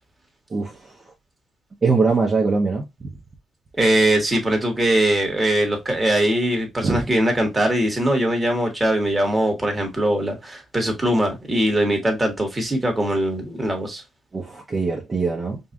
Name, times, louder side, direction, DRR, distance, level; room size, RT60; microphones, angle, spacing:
voice 1, 0.5-0.9 1.8-3.1 6.8-7.0 14.3-15.6, right 4 dB, 30° right, 1.0 m, -22 dB
voice 2, 3.8-14.0, right 1 dB, 15° right, 1.7 m, -21 dB
5.3 x 2.5 x 2.6 m
cardioid pair, 90°, 0 cm